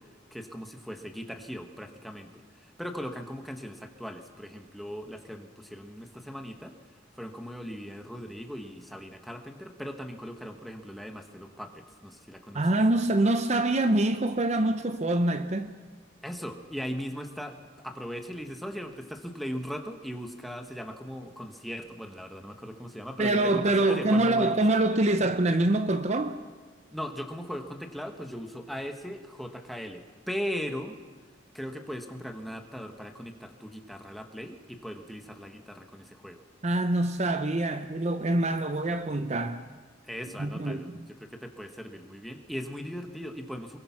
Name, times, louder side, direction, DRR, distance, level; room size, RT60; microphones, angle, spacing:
voice 1, 0.3-6.7 7.2-12.7 16.2-17.6 17.8-24.6 26.9-31.0 31.5-36.4 40.1-43.8, equal, ahead, 1.4 m, -39 dB
voice 2, 12.5-15.7 23.2-26.4 36.6-39.7 40.4-41.0, right 2 dB, 35° right, 0.7 m, -25 dB
24.0 x 22.5 x 5.9 m
head